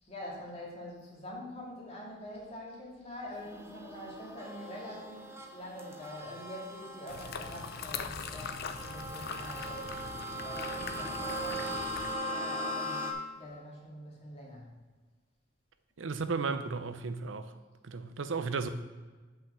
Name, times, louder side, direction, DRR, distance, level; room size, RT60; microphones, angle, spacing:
voice 1, 0.0-11.9 12.2-13.0 13.4-14.7, left 1 dB, 35° left, -4 dB, 2.2 m, -45 dB
sound 1, 3.4-13.1, equal, 15° right, 0.9 m, -39 dB
sound 2, 7.1-12.2, left 6 dB, 55° left, 0.5 m, -41 dB
voice 2, 16.0-17.5 17.8-18.7, right 4 dB, 80° right, 10 dB, 0.6 m, -34 dB
5.8 x 5.7 x 6.1 m, 1.3 s
head